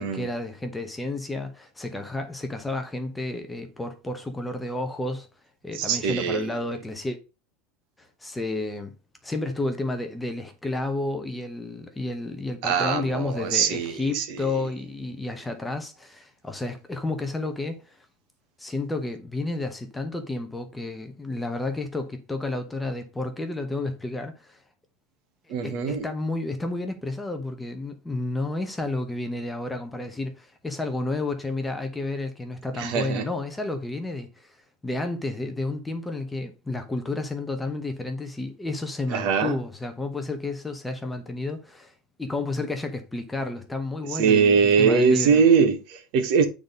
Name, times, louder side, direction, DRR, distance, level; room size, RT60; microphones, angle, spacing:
voice 1, 0.0-5.3 5.6-7.2 8.0-8.9 9.2-18.0 18.6-24.6 25.6-34.6 34.8-41.9 42.2-45.4, left 2 dB, 5° left, 0.9 m, -31 dB
voice 2, 5.8-6.4 12.6-14.4 25.5-26.0 32.8-33.2 39.1-39.6 44.2-46.4, right 6 dB, 50° right, 1.5 m, -22 dB
8.7 x 4.1 x 5.2 m
supercardioid pair, 160°, 0 cm